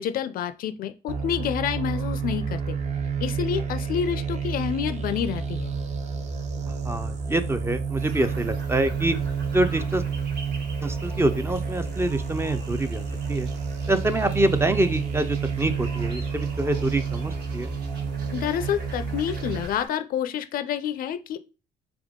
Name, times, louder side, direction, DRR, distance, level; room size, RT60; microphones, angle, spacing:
voice 1, 0.0-2.8 3.2-5.7 18.3-21.4, left 9 dB, 60° left, 12 dB, 0.4 m, -28 dB
sound 1, 1.1-19.6, right 5 dB, 40° right, 0.8 m, -30 dB
voice 2, 6.8-9.2 9.5-10.0 10.8-13.5 13.9-17.7, right 2 dB, 15° right, 9 dB, 0.4 m, -26 dB
sound 2, 8.0-19.9, right 3 dB, 70° right, 1.4 m, -44 dB
3.6 x 3.4 x 3.6 m, 0.33 s
cardioid pair, 110°, 17 cm